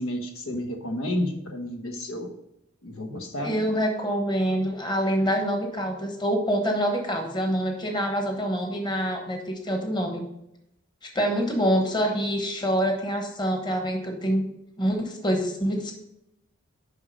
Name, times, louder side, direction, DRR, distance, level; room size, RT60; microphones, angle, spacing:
voice 1, 0.0-2.3 2.8-3.6, left 1 dB, 90° left, 4 dB, 1.1 m, -31 dB
voice 2, 3.4-10.2 11.0-14.5 14.8-15.9, equal, 20° left, 3 dB, 1.2 m, -26 dB
6.7 x 5.3 x 5.1 m, 0.83 s
head